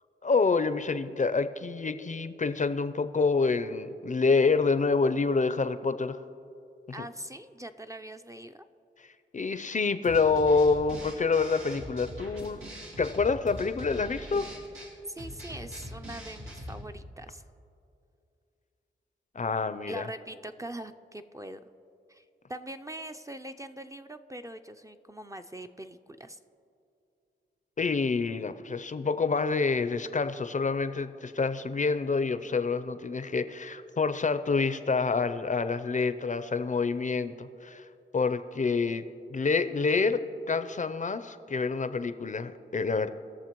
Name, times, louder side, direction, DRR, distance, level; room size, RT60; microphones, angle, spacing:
voice 1, 0.2-6.2 7.0-7.1 9.3-12.6 13.0-14.4 19.3-20.1 27.8-37.9 38.1-39.0 39.3-43.1, left 4 dB, 40° left, 11 dB, 0.5 m, -27 dB
voice 2, 6.9-8.6 15.1-17.4 19.9-21.6 22.1-26.4, right 1 dB, 15° right, 7 dB, 0.4 m, -42 dB
sound 1, 10.0-16.9, equal, 90° right, 1.9 m, -43 dB
20.0 x 6.8 x 3.0 m, 2.6 s
cardioid pair, 45°, 20 cm